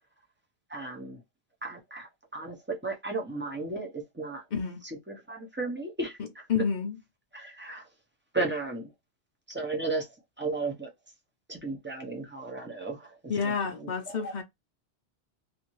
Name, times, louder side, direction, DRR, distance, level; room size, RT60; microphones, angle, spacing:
voice 1, 0.7-1.2 1.6-4.4 4.8-6.2 7.3-7.8 8.3-8.9 9.5-10.1 10.4-10.9 11.5-13.1 13.4-13.5 13.8-14.3, right 3 dB, 15° right, 0.5 m, -34 dB
voice 2, 4.5-4.8 6.5-7.0 13.3-14.4, left 6 dB, 50° left, 0.6 m, -29 dB
2.6 x 2.5 x 3.0 m
omnidirectional pair, 1.2 m